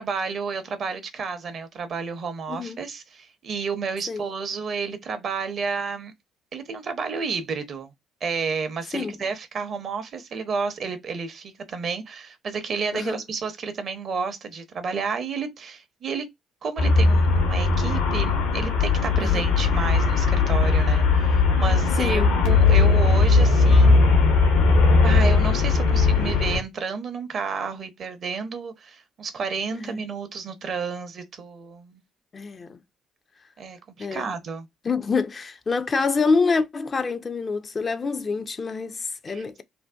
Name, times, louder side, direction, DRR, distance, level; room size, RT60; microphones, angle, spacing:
voice 1, 0.0-6.1 6.5-7.9 8.2-16.3 16.6-24.3 25.0-32.0 33.6-34.7 39.3-39.6, right 5 dB, 50° right, 0.6 m, -31 dB
voice 2, 2.5-2.8 4.1-4.2 8.9-9.2 12.9-13.2 19.2-19.5 22.0-22.3 29.7-30.0 32.3-32.8 34.0-34.3 34.8-39.6, left 4 dB, 35° left, 0.3 m, -26 dB
Traffic noise roadway noise, 16.8-26.6, left 4 dB, 70° left, 0.7 m, -18 dB
2.6 x 2.1 x 2.2 m
figure-of-eight pair, 45°, 0 cm